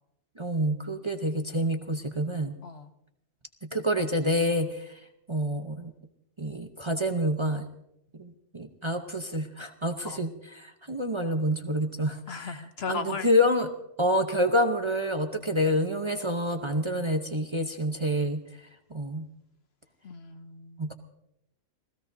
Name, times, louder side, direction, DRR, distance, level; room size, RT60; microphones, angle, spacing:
voice 1, 0.4-2.6 3.7-4.9 5.3-5.9 6.4-7.6 8.2-12.6 12.9-13.7 14.0-18.4 18.9-19.3 20.8-20.9, equal, 25° right, 5 dB, 0.8 m, -27 dB
voice 2, 2.6-2.9 10.0-10.2 12.3-13.3 15.5-15.6 20.0-20.9, left 5 dB, 55° left, 9 dB, 0.9 m, -37 dB
28.0 x 17.0 x 2.7 m, 0.80 s
omnidirectional pair, 1.4 m